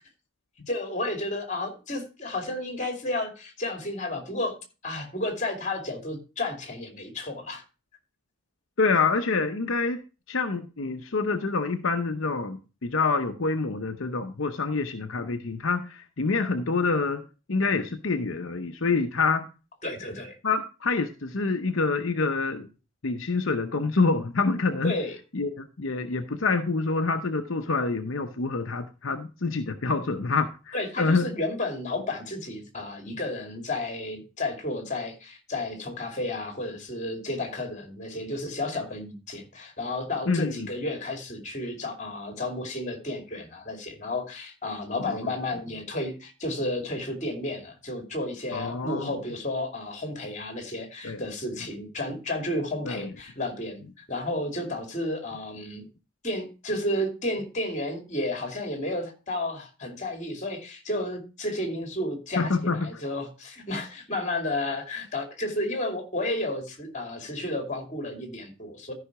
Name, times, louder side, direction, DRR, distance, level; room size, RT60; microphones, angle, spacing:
voice 1, 0.7-4.6 4.8-7.6 19.8-20.4 24.8-25.2 30.7-55.9 56.2-68.9, left 1 dB, 35° left, 5 dB, 2.6 m, -32 dB
voice 2, 8.8-10.0 10.3-17.2 17.5-19.5 20.4-22.7 23.0-25.0 25.3-31.3 40.3-40.7 45.0-45.3 48.5-49.1 51.0-51.2 52.8-53.1 62.4-63.0, left 4 dB, 70° left, 6 dB, 0.8 m, -27 dB
13.5 x 5.6 x 4.7 m, 0.32 s
head